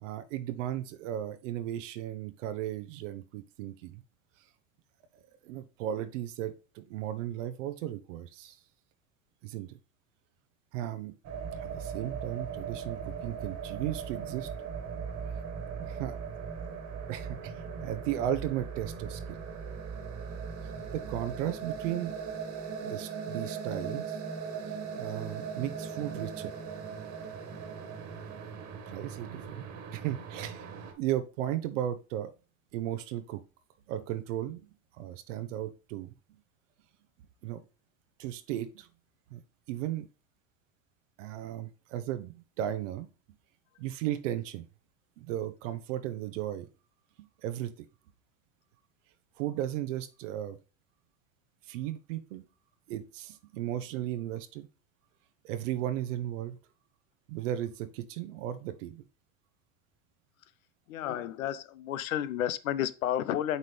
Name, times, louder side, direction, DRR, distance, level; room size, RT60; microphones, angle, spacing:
voice 1, 0.0-4.0 5.4-8.6 9.4-9.8 10.7-11.1 11.6-14.5 15.8-16.2 17.1-19.4 20.9-22.1 22.8-24.2 24.7-26.5 28.9-30.7 31.0-32.3 32.7-33.4 33.9-34.6 35.0-36.4 37.4-37.6 38.2-38.9 39.3-39.4 39.7-40.1 41.2-43.1 43.8-44.7 45.2-46.7 47.4-47.7 49.4-50.6 51.7-52.4 52.9-54.7 55.4-56.6 57.3-59.0, right 12 dB, 65° right, 0.8 m, -35 dB
sound 1, 11.2-30.9, right 6 dB, 40° right, 1.7 m, -39 dB
voice 2, 60.9-63.6, left 11 dB, 75° left, 0.6 m, -31 dB
8.2 x 4.0 x 3.3 m
hypercardioid pair, 85°, 41 cm